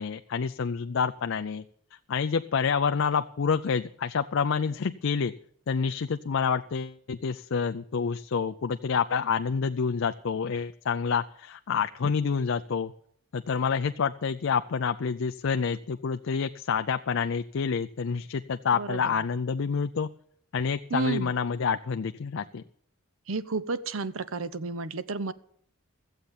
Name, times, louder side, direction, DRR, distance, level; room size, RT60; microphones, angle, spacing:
voice 1, 0.0-1.6 2.1-5.3 5.7-12.9 13.3-20.1 20.5-22.6, left 6 dB, 60° left, 8 dB, 0.4 m, -28 dB
voice 2, 18.8-19.1 20.9-21.3 23.3-25.3, right 4 dB, 65° right, 15 dB, 0.7 m, -31 dB
14.5 x 7.9 x 7.2 m, 0.63 s
head